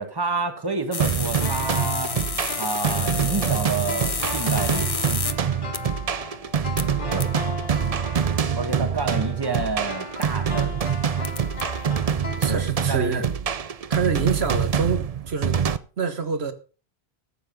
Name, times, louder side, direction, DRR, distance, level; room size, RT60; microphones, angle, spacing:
voice 1, 0.0-2.1 2.6-5.1 7.1-7.3 8.5-10.7 12.5-13.2, right 3 dB, 20° right, 1.4 m, -29 dB
sound 1, 0.9-5.3 5.7-5.8 6.8-6.9 7.2-7.3 10.2-10.3 11.2-11.6 12.4-12.5 14.2-14.5, left 5 dB, 35° left, 0.8 m, -30 dB
sound 2, 1.0-15.8, right 7 dB, 45° right, 0.6 m, -25 dB
sound 3, 1.4-13.1 13.3-13.4, left 3 dB, 50° left, 2.7 m, -36 dB
voice 2, 12.4-13.3 13.9-15.6 16.0-16.5, right 5 dB, 80° right, 1.6 m, -26 dB
14.0 x 8.1 x 5.2 m
omnidirectional pair, 1.1 m